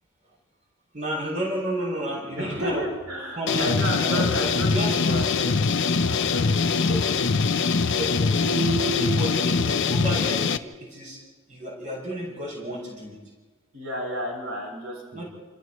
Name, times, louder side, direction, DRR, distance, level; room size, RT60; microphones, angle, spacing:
voice 1, 0.9-3.0 3.3-5.3 6.7-7.1 7.8-8.4 9.0-11.2 11.5-13.2 15.1-15.2, equal, 35° right, -3 dB, 7.0 m, -32 dB
voice 2, 2.3-7.2 8.3-9.3 13.7-15.3, right 1 dB, 80° right, -1 dB, 7.4 m, -32 dB
sound 1, 3.5-10.6, left 4 dB, 55° left, 0.7 m, -23 dB
29.5 x 28.0 x 3.2 m, 1.3 s
head